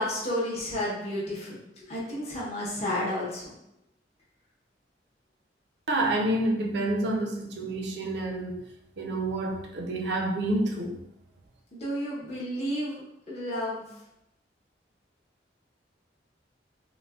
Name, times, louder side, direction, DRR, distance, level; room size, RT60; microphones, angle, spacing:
voice 1, 0.0-3.5 11.7-13.0 13.3-13.9, left 1 dB, 35° left, -7 dB, 0.8 m, -31 dB
voice 2, 5.9-8.7 9.0-11.0, right 1 dB, 65° right, 2 dB, 0.5 m, -28 dB
3.7 x 2.1 x 2.3 m, 0.83 s
head